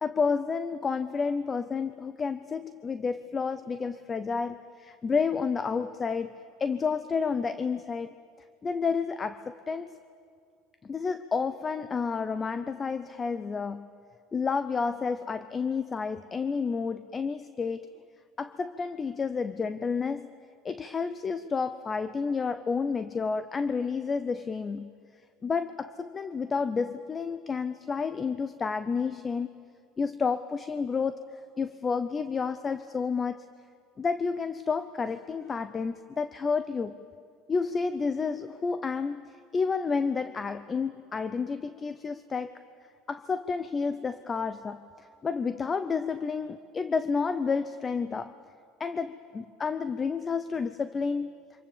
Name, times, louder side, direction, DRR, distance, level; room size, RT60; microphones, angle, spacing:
voice 1, 0.0-8.1 8.6-10.0 10.8-13.9 14.3-17.9 18.4-20.3 20.6-24.9 25.4-29.7 30.0-31.2 31.6-33.4 34.0-36.9 37.5-42.6 43.1-48.4 48.8-51.4, left 5 dB, 20° left, 13 dB, 0.6 m, -30 dB
28.0 x 25.5 x 7.3 m, 2.3 s
cardioid pair, 140°, 0 cm